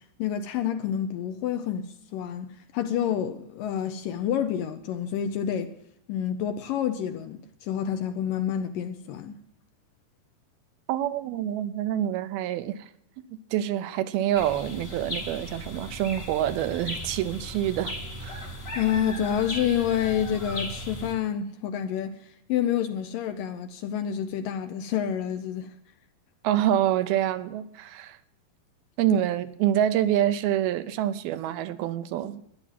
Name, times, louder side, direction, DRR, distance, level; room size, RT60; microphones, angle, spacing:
voice 1, 0.2-5.7 6.1-9.4 18.8-22.2 22.5-25.7, left 9 dB, 75° left, 2.1 m, -28 dB
voice 2, 10.9-12.9 13.2-13.3 13.5-18.0 18.2-18.4 26.4-28.2 29.0-32.4, right 11 dB, 80° right, 2.5 m, -26 dB
sound 1, 14.3-21.1, equal, 40° left, 0.9 m, -37 dB
13.5 x 10.5 x 7.3 m
omnidirectional pair, 4.6 m